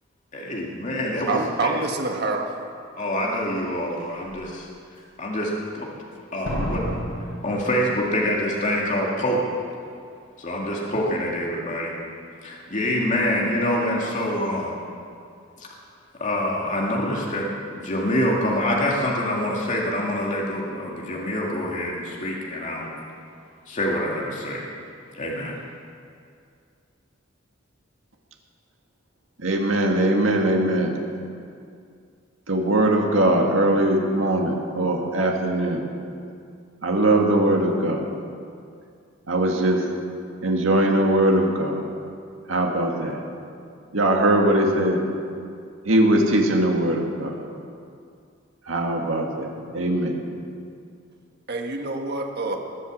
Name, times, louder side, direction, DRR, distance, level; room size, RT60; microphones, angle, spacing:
voice 1, 0.3-1.7 3.0-4.7 5.2-5.9 6.3-6.8 7.4-9.4 10.4-11.9 12.4-14.7 15.6-15.7 16.2-22.9 23.7-24.6 25.1-25.5, left 1 dB, 40° left, -3 dB, 2.1 m, -26 dB
voice 2, 1.3-2.6 51.5-52.6, right 3 dB, 55° right, 2 dB, 1.5 m, -26 dB
Slam, 3.3-3.4 4.0-4.4 6.4-8.3 8.6-8.7, equal, 85° left, 4.3 m, -31 dB
voice 3, 29.4-30.9 32.5-35.9 36.8-38.0 39.3-39.8 40.4-41.8 42.5-43.2 43.9-45.0 45.8-47.3 48.7-50.1, right 1 dB, 85° right, 1 dB, 2.0 m, -21 dB
20.5 x 8.2 x 7.4 m, 2.4 s
head